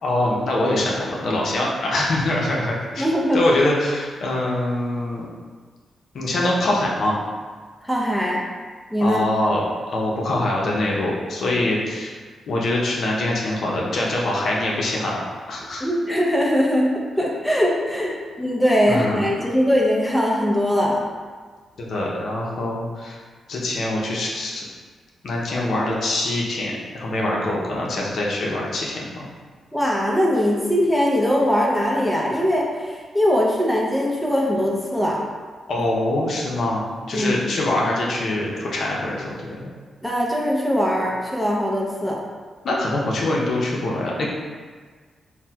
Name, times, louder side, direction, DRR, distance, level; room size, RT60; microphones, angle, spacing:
voice 1, 0.0-3.0 3.3-5.3 6.1-7.2 9.0-12.1 12.5-15.2 15.5-15.8 18.9-19.2 21.8-23.2 23.5-24.6 25.2-29.2 35.7-39.7 42.6-44.3, left 1 dB, 70° left, -3 dB, 0.5 m, -24 dB
voice 2, 2.9-3.4 7.8-8.4 8.9-9.3 15.8-21.0 29.7-35.2 35.8-35.9 37.1-37.4 40.0-42.2, equal, ahead, -3 dB, 0.5 m, -21 dB
4.1 x 2.1 x 2.2 m, 1.5 s
cardioid pair, 80°, 0 cm